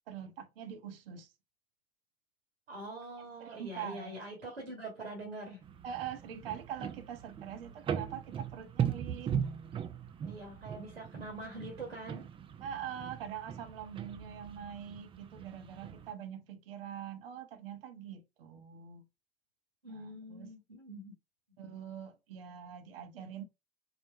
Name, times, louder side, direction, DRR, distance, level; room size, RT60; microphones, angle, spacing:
voice 1, 0.1-1.3 3.4-4.5 5.8-9.3 12.6-19.0 19.9-20.5 21.6-23.4, right 8 dB, 65° right, 0.8 m, -44 dB
voice 2, 2.7-5.6 10.2-12.3 19.8-21.1, right 2 dB, 80° right, 1.2 m, -44 dB
sound 1, 5.6-16.1, right 8 dB, 20° right, 0.4 m, -39 dB
3.9 x 2.2 x 4.3 m
figure-of-eight pair, 70°, 31 cm